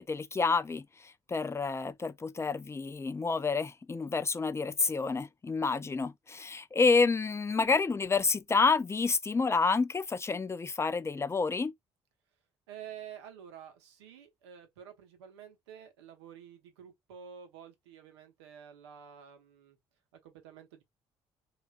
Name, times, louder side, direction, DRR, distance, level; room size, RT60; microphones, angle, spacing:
voice 1, 0.0-11.7, left 4 dB, 20° left, 0.4 m, -29 dB
voice 2, 12.7-19.8 20.2-20.8, right 8 dB, 90° right, 0.7 m, -50 dB
3.2 x 2.4 x 2.3 m
hypercardioid pair, 50°, 14 cm